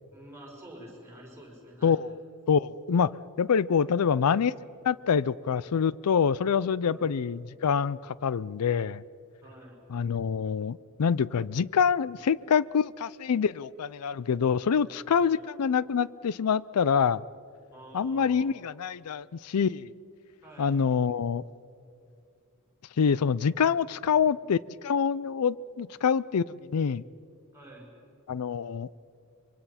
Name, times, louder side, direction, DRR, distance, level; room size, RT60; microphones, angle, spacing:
voice 1, 0.1-2.0 6.8-7.0 9.4-9.8 15.1-15.4 17.7-18.6 20.4-20.8 27.5-27.9, right 1 dB, 10° right, -3 dB, 5.5 m, -48 dB
voice 2, 1.8-2.2 2.5-4.6 4.8-9.0 9.9-17.2 17.9-19.9 20.6-21.4 23.0-27.0 28.3-28.9, left 6 dB, 85° left, 20 dB, 0.5 m, -26 dB
25.5 x 23.5 x 5.8 m, 2.5 s
head